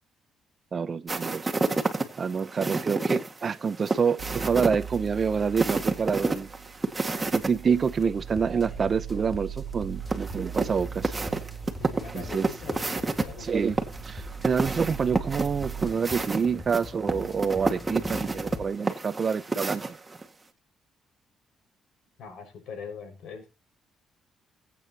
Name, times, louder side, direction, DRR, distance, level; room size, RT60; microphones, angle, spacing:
voice 1, 0.7-1.5 2.2-6.5 7.3-11.1 12.1-12.5 13.4-13.8 14.1-20.0, right 6 dB, 45° right, 0.7 m, -27 dB
sound 1, 1.1-7.5 7.8-7.9 10.1-13.2 13.8-20.2, right 3 dB, 20° right, 1.9 m, -29 dB
sound 2, 4.2-15.9, right 9 dB, 80° right, 1.5 m, -40 dB
sound 3, 8.2-18.7, left 3 dB, 20° left, 2.1 m, -43 dB
voice 2, 11.8-13.8 22.2-23.4, left 6 dB, 80° left, 5.7 m, -42 dB
21.5 x 8.6 x 2.9 m
cardioid pair, 90°, 0 cm